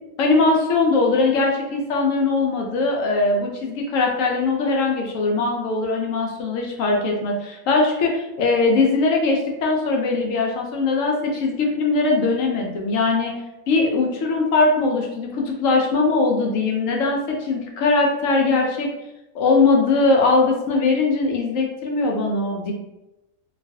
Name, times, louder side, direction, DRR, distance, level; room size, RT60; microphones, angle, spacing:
voice 1, 0.2-13.3 13.7-18.9 19.3-22.7, left 3 dB, 75° left, 0 dB, 0.9 m, -20 dB
3.1 x 2.3 x 2.6 m, 0.96 s
omnidirectional pair, 1.4 m